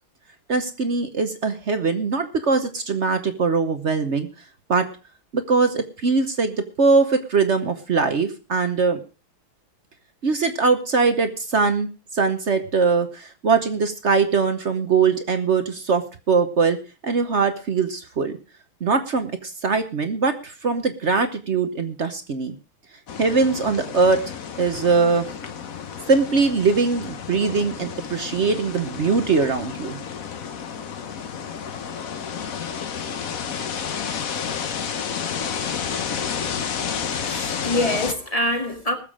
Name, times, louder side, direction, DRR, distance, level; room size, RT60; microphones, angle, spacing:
voice 1, 0.5-4.3 4.7-4.9 5.3-9.0 10.2-16.8 17.0-18.4 18.8-22.5 23.2-24.2 24.6-25.3 26.1-30.0, right 4 dB, 50° right, 8 dB, 0.9 m, -21 dB
sound 1, 23.1-38.1, left 7 dB, 50° left, 1.1 m, -31 dB
voice 2, 36.4-39.0, left 1 dB, 20° left, 4 dB, 1.6 m, -26 dB
20.0 x 7.3 x 4.9 m, 0.35 s
omnidirectional pair, 2.3 m